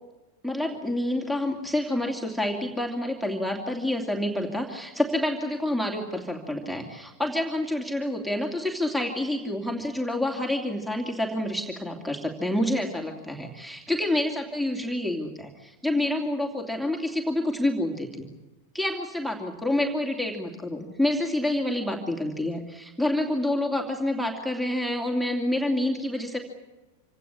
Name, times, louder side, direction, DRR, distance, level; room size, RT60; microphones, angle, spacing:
voice 1, 0.4-18.3 18.7-26.4, left 1 dB, 5° right, 3 dB, 2.8 m, -28 dB
26.0 x 18.0 x 9.8 m, 1.1 s
figure-of-eight pair, 90°, 0 cm